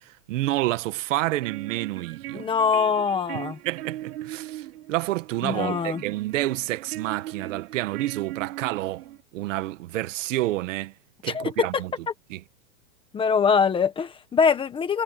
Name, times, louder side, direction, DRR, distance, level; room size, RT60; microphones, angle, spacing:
voice 1, 0.0-2.5 3.3-10.9 11.2-11.9 12.3-12.4, right 17 dB, 60° right, 1.7 m, -29 dB
sound 1, 1.2-9.2, right 14 dB, 90° right, 4.0 m, -39 dB
voice 2, 2.3-3.6 5.4-6.0 11.3-11.8 13.1-15.0, left 6 dB, 10° left, 1.4 m, -23 dB
supercardioid pair, 170°, 43 cm